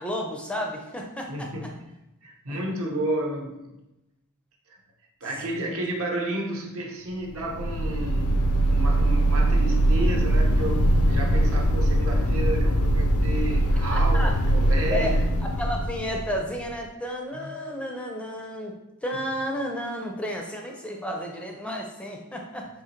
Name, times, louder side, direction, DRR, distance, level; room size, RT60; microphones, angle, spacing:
voice 1, 0.0-1.5 2.5-2.6 13.9-14.3 14.9-15.1 15.6-18.7 19.0-22.7, equal, 5° left, 1 dB, 0.4 m, -32 dB
voice 2, 1.3-1.8 2.2-3.8 4.7-4.8 5.2-8.3 8.7-15.2 17.3-17.5, right 1 dB, 65° right, 1 dB, 0.8 m, -32 dB
sound 1, 7.3-16.6, right 1 dB, 70° left, 0.4 m, -22 dB
3.8 x 3.0 x 4.3 m, 0.93 s
head